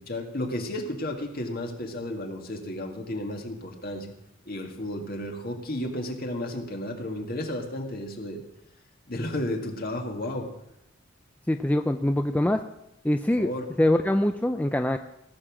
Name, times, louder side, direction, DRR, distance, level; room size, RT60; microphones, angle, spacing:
voice 1, 0.1-4.1 4.5-8.4 9.1-10.5 13.4-13.7, left 1 dB, 50° left, 3 dB, 2.1 m, -33 dB
voice 2, 11.5-12.6 13.0-13.5 13.8-15.0, left 1 dB, 10° left, 7 dB, 0.4 m, -23 dB
17.5 x 6.9 x 7.4 m, 0.83 s
head